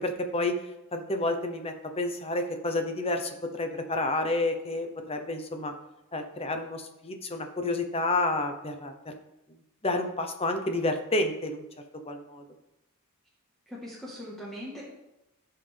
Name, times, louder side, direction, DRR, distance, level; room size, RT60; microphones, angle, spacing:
voice 1, 0.0-5.7 6.1-9.1 9.5-11.6 12.1-12.4, left 2 dB, 25° left, 6 dB, 0.9 m, -30 dB
voice 2, 13.7-14.8, equal, ahead, -6 dB, 1.6 m, -40 dB
15.0 x 5.7 x 3.5 m, 0.94 s
head